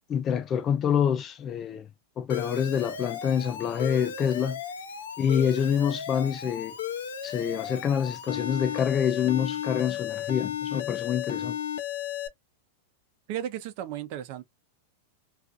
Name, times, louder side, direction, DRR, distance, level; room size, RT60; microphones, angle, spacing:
voice 1, 0.1-1.9 2.2-4.6 5.2-6.8 7.2-11.6, left 8 dB, 25° left, 0.4 m, -26 dB
Alarm, 2.3-12.3, left 9 dB, 90° left, 0.5 m, -34 dB
voice 2, 13.3-14.4, right 11 dB, 55° right, 0.6 m, -34 dB
2.5 x 2.4 x 2.5 m
supercardioid pair, 135°, 0 cm